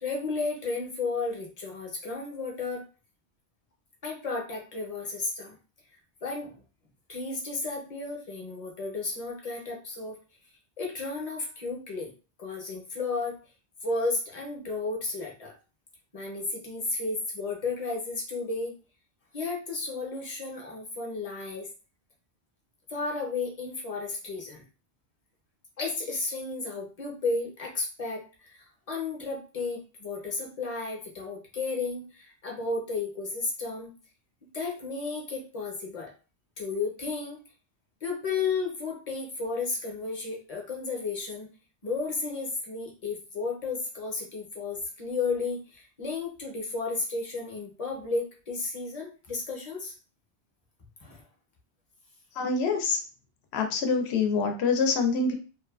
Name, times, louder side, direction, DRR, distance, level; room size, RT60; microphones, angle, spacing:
voice 1, 0.0-2.8 4.0-5.6 6.2-6.6 7.1-10.2 10.8-12.1 12.4-13.4 13.8-15.5 16.1-18.7 19.3-21.7 22.9-24.6 25.8-33.9 34.5-36.1 36.6-37.4 38.0-41.5 41.8-49.9 51.0-51.2, left 3 dB, 40° left, 0 dB, 0.7 m, -33 dB
voice 2, 52.4-53.0 53.5-55.3, left 4 dB, 80° left, 4 dB, 0.8 m, -25 dB
2.7 x 2.3 x 2.3 m, 0.35 s
omnidirectional pair, 1.1 m